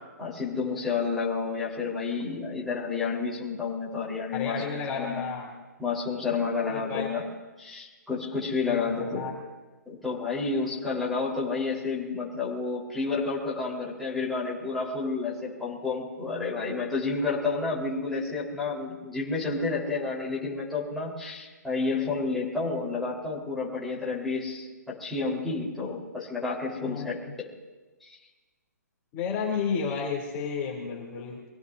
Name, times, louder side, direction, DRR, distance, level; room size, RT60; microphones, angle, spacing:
voice 1, 0.2-4.6 4.9-5.2 5.8-7.2 7.6-9.2 9.9-27.2 28.0-28.1, left 4 dB, ahead, -7 dB, 4.4 m, -30 dB
voice 2, 4.3-5.5 6.7-7.1 8.7-9.3 26.8-27.1 29.1-31.5, left 6 dB, 25° left, -3 dB, 3.5 m, -32 dB
26.5 x 17.5 x 2.8 m, 1.2 s
hypercardioid pair, 150°, 9 cm